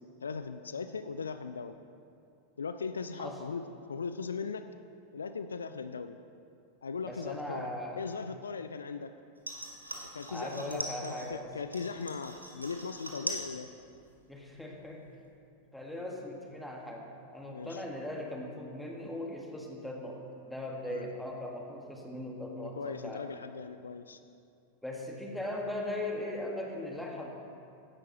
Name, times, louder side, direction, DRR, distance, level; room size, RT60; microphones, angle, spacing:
voice 1, 0.2-1.8 2.6-3.6 3.9-4.7 5.1-6.2 6.8-7.7 8.0-9.1 10.1-13.7 17.5-17.8 20.9-21.1 22.6-24.2, left 5 dB, 70° left, 10 dB, 0.4 m, -39 dB
voice 2, 7.1-8.1 10.3-11.5 14.3-15.1 15.7-23.3 24.8-27.3, left 1 dB, 5° left, -1 dB, 1.7 m, -39 dB
sound 1, 9.4-11.3 11.7-13.5 13.8-14.4 14.7-14.8, equal, 90° right, 1.2 m, -41 dB
15.5 x 10.5 x 3.0 m, 2.5 s
figure-of-eight pair, 90°, 0 cm